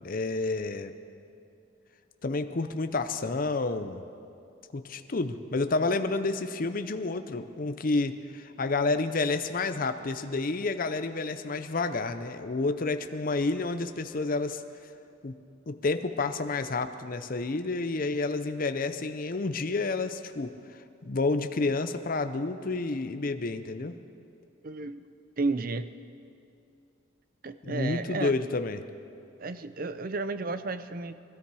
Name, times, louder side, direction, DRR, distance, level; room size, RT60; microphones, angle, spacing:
voice 1, 0.0-0.9 2.2-4.0 4.7-14.6 15.2-15.3 15.7-20.5 21.0-24.0 27.6-28.8, left 3 dB, 45° left, 9 dB, 0.6 m, -30 dB
voice 2, 24.6-25.1 25.4-25.9 27.4-28.3 29.4-31.1, right 3 dB, 45° right, 12 dB, 0.6 m, -32 dB
23.0 x 13.0 x 4.8 m, 2.6 s
head